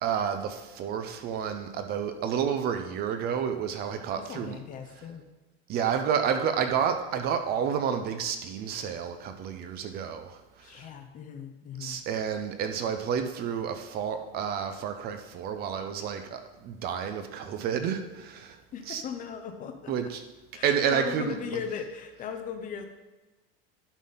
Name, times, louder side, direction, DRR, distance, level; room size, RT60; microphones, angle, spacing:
voice 1, 0.0-4.6 5.7-10.9 11.8-18.6 18.9-19.0 19.9-20.2 20.6-21.6, right 7 dB, 30° right, 7 dB, 0.5 m, -30 dB
voice 2, 4.2-5.3 10.6-12.0 18.7-19.9 20.5-22.9, left 7 dB, 25° left, 7 dB, 0.6 m, -38 dB
11.0 x 4.0 x 5.5 m, 1.1 s
cardioid pair, 170°, 30 cm